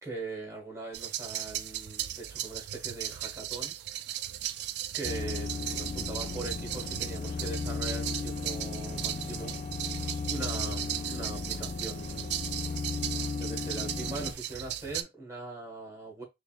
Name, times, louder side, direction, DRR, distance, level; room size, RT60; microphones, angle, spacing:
voice 1, 0.0-3.8 4.9-9.5 10.3-12.4 13.4-16.2, right 2 dB, 15° right, 1.4 m, -41 dB
sound 1, 0.9-15.0, right 12 dB, 60° right, 0.3 m, -37 dB
sound 2, 5.0-14.3, left 4 dB, 35° left, 0.3 m, -36 dB
3.7 x 3.2 x 2.4 m
head